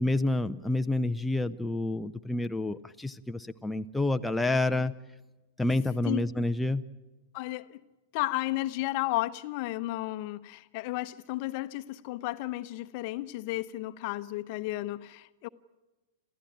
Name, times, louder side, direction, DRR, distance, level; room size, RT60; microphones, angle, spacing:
voice 1, 0.0-4.9 5.6-6.8, left 2 dB, 5° left, 0.6 m, -28 dB
voice 2, 7.3-7.8 8.1-15.5, left 18 dB, 50° left, 0.8 m, -33 dB
27.5 x 15.0 x 8.8 m
figure-of-eight pair, 100°, 0 cm